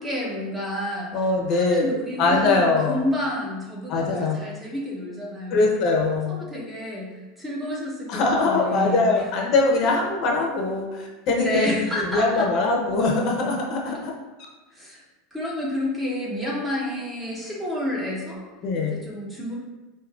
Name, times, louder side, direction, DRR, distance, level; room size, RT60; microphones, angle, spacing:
voice 1, 0.0-1.1 1.5-5.7 6.3-9.2 11.4-12.5 14.7-15.0 15.3-18.4 18.8-19.5, left 1 dB, 10° right, -5 dB, 1.0 m, -30 dB
voice 2, 1.1-1.9 2.2-3.0 3.9-4.4 5.5-6.4 8.1-14.1 18.6-19.1, left 3 dB, 50° left, -1 dB, 0.7 m, -22 dB
5.0 x 2.7 x 2.4 m, 1.2 s
supercardioid pair, 135°, 0 cm